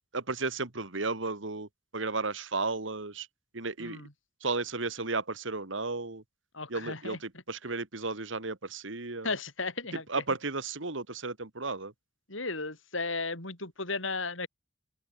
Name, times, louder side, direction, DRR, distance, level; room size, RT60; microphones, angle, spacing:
voice 1, 0.1-1.7 1.9-3.3 3.5-4.0 4.4-6.2 6.7-9.3 10.1-11.9, right 3 dB, 70° right, 1.9 m, -34 dB
voice 2, 3.8-4.1 6.5-7.2 9.2-10.0 12.3-14.5, left 3 dB, 75° left, 6.2 m, -35 dB
open air
head